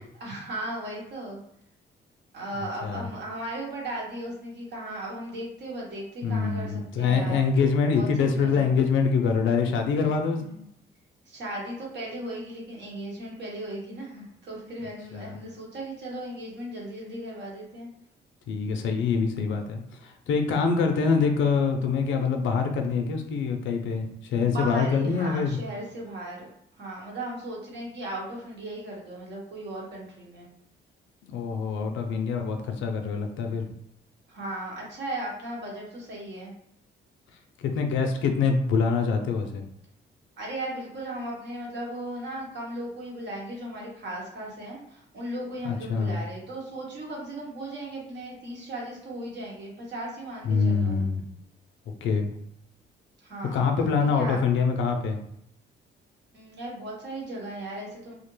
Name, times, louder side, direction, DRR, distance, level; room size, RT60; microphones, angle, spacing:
voice 1, 0.0-1.4 2.3-7.5 7.9-8.7 10.2-10.6 11.3-17.9 24.4-26.5 26.8-30.5 34.3-36.5 40.4-51.0 53.2-53.7 54.2-54.4 56.3-58.1, right 1 dB, 60° right, -2 dB, 1.0 m, -36 dB
voice 2, 2.6-3.1 6.2-10.4 15.1-15.4 18.5-25.6 31.2-33.7 37.6-39.7 45.9-46.2 50.4-51.2 52.0-52.3 53.5-55.2, left 5 dB, 75° left, 4 dB, 0.4 m, -25 dB
2.4 x 2.1 x 3.0 m, 0.75 s
cardioid pair, 90°, 20 cm